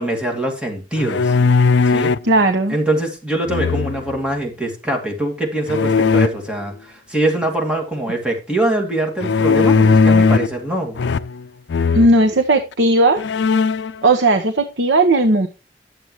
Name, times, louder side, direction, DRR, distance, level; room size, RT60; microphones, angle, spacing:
voice 1, 0.0-1.3 1.8-2.1 2.7-11.0, right 1 dB, 5° right, 1 dB, 2.2 m, -23 dB
sound 1, 1.0-2.3 3.5-4.2 5.7-6.3 9.2-10.6 11.0-11.4 11.7-12.1 12.7-12.8 13.2-13.9, left 4 dB, 80° left, 0.4 m, -17 dB
voice 2, 2.2-2.7 11.9-13.2 14.0-15.5, right 2 dB, 90° right, 6 dB, 1.0 m, -15 dB
11.0 x 7.9 x 3.1 m, 0.30 s
head